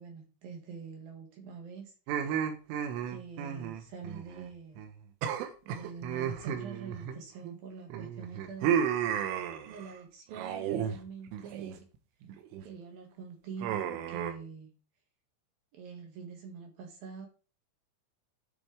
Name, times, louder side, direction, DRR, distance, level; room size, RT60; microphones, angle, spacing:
voice 1, 0.0-1.9 3.1-4.8 5.6-8.9 9.2-11.9 12.6-14.7 15.7-17.3, right 5 dB, 60° right, 2.9 m, -45 dB
sound 1, 2.1-4.5 4.8-4.9 5.2-7.5 7.9-9.9 10.3-11.0 11.3-11.8 12.2-12.6 13.6-14.3, right 9 dB, 80° right, 3.5 m, -33 dB
13.0 x 7.0 x 3.4 m
omnidirectional pair, 5.9 m